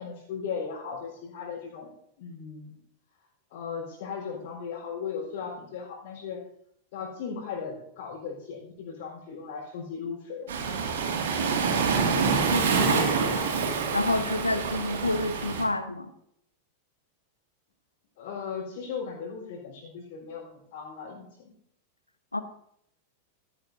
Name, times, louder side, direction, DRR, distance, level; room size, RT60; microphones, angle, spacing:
voice 1, 0.0-1.9 2.2-2.8 3.5-6.4 6.9-10.8 18.2-21.5, left 6 dB, 50° left, -5 dB, 4.1 m, -37 dB
Waves surf, 10.5-15.6, right 5 dB, 60° right, 2.2 m, -26 dB
voice 2, 12.1-13.4 13.9-16.1 22.3-22.4, left 2 dB, 85° left, 11 dB, 0.9 m, -29 dB
16.0 x 14.5 x 2.7 m, 0.72 s
figure-of-eight pair, 90°, 0 cm